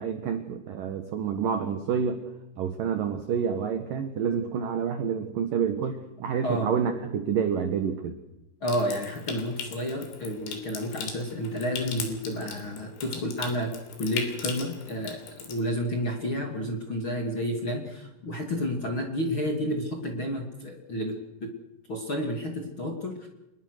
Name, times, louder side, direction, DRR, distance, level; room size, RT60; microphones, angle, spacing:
voice 1, 0.0-2.2 2.6-8.2, right 7 dB, 70° right, 8 dB, 2.1 m, -28 dB
Water tap faucet / Sink (filling or washing) / Trickle dribble, 8.6-15.6, left 6 dB, 70° left, 5.5 m, -39 dB
voice 2, 8.6-21.5 21.9-23.3, equal, 35° left, 2 dB, 2.2 m, -31 dB
26.5 x 21.0 x 6.5 m, 0.93 s
omnidirectional pair, 6.0 m